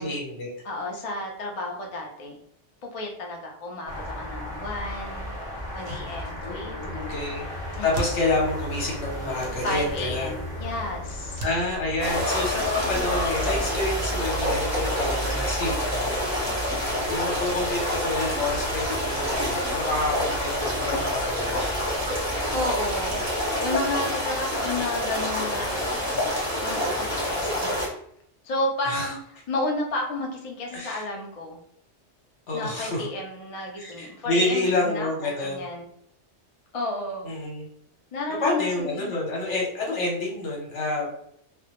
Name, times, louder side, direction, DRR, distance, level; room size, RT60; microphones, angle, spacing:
voice 1, 0.0-0.5 6.4-7.5 7.8-10.3 11.4-16.1 17.1-21.6 28.8-29.1 30.7-31.0 32.5-33.1 33.7-35.7 37.2-37.7 38.3-41.1, left 2 dB, 75° left, -2 dB, 1.2 m, -28 dB
voice 2, 0.6-2.4 2.8-5.3 5.7-7.3 7.8-8.1 9.6-11.4 22.5-23.2 23.6-25.9 26.6-27.8 28.4-29.1 29.5-31.6 32.5-35.9 36.7-37.3 38.1-39.2, left 2 dB, 55° left, 0 dB, 0.4 m, -32 dB
sound 1, 3.9-23.4, equal, 30° left, 0.9 m, -35 dB
sound 2, 5.6-6.8 7.0-7.1 7.4-8.9 9.4-13.1 13.4-13.5, right 3 dB, 60° right, 0.7 m, -40 dB
sound 3, 12.0-27.9, equal, 15° right, 0.6 m, -27 dB
2.2 x 2.1 x 2.8 m, 0.69 s
omnidirectional pair, 1.2 m